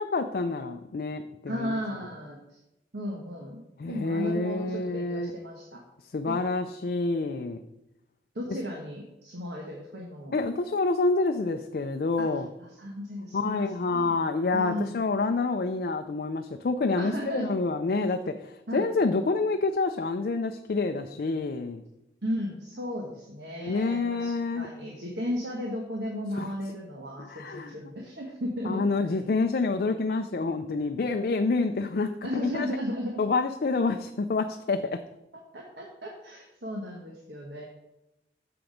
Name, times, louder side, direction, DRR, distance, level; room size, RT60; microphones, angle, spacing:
voice 1, 0.0-1.8 3.8-5.3 6.1-7.6 10.3-12.5 13.3-21.8 23.6-24.7 26.3-26.5 27.2-27.7 28.7-32.7 33.2-34.8, left 3 dB, 55° left, 6 dB, 0.4 m, -28 dB
voice 2, 1.5-2.6 2.9-3.6 3.9-5.8 6.3-6.4 8.3-10.3 12.2-12.3 12.6-14.2 14.5-15.0 17.0-17.5 18.7-18.9 22.2-28.9 29.3-29.4 32.2-33.2 35.5-37.6, equal, 70° right, 0 dB, 1.1 m, -35 dB
6.9 x 6.0 x 5.0 m, 0.91 s
head